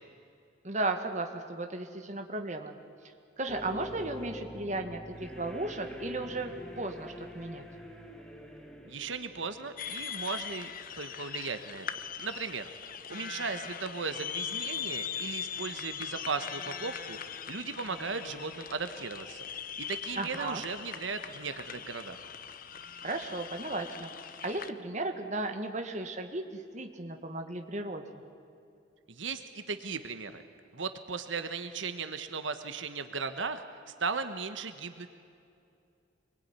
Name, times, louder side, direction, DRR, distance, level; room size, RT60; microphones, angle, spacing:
voice 1, 0.6-2.8 3.4-7.7 20.2-20.6 23.0-24.1 24.4-28.0, right 2 dB, 40° right, 5 dB, 1.9 m, -35 dB
sound 1, 3.5-10.0, left 1 dB, 5° left, 2.3 m, -45 dB
voice 2, 8.9-10.7 11.0-11.9 12.2-12.7 13.1-19.5 19.9-22.2 29.1-30.4 30.7-35.1, right 4 dB, 90° right, 9 dB, 1.3 m, -37 dB
sound 2, 9.8-24.7, left 8 dB, 45° left, 1.0 m, -40 dB
25.0 x 21.5 x 9.8 m, 2.5 s
head